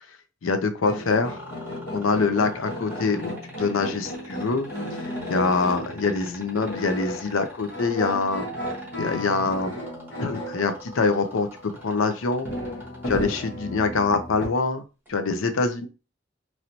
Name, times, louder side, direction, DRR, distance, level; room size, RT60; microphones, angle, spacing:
voice 1, 0.4-1.4 1.9-8.5 9.0-9.7 10.2-12.5 13.1-14.8 15.1-15.9, left 4 dB, 90° left, 8 dB, 0.5 m, -25 dB
sound 1, 0.8-12.1 12.4-14.5, left 1 dB, 55° left, 1.2 m, -34 dB
sound 2, 1.2-13.4 15.0-15.2, equal, 10° right, 1.1 m, -44 dB
3.1 x 2.9 x 2.7 m, 0.31 s
head